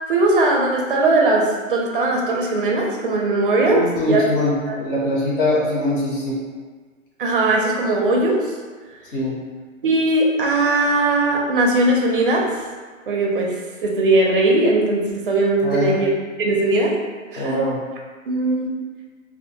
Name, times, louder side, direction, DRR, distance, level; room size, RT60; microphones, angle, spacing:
voice 1, 0.1-4.3 4.7-4.8 7.2-8.5 9.8-12.5 13.1-16.1 16.4-16.9 17.3-17.6 18.3-18.7, right 2 dB, 40° right, 0 dB, 0.4 m, -19 dB
voice 2, 3.7-6.4 9.1-9.4 15.6-16.0 17.4-17.8, left 1 dB, 40° left, -4 dB, 0.5 m, -22 dB
2.5 x 2.4 x 2.7 m, 1.4 s
hypercardioid pair, 155°, 41 cm